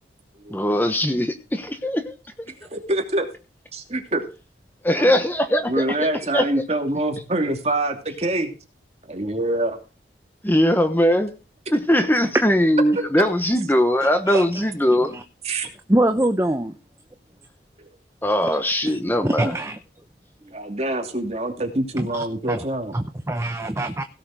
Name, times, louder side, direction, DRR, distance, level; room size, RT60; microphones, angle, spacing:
voice 1, 0.5-2.1 4.8-6.5 10.4-11.3 11.7-15.1 18.2-19.5, equal, 10° left, 8 dB, 1.0 m, -20 dB
voice 2, 2.6-3.3 3.7-4.3 5.0-5.2 5.7-8.5 9.0-9.8 15.4-15.7 20.5-23.0, right 1 dB, 35° right, 4 dB, 2.6 m, -25 dB
voice 3, 14.0-14.4 15.1-15.2 15.9-16.7 18.9-19.0 19.2-19.8 22.0-22.6 22.9-24.0, right 1 dB, 15° right, 8 dB, 0.8 m, -24 dB
17.0 x 6.7 x 5.0 m, 0.33 s
head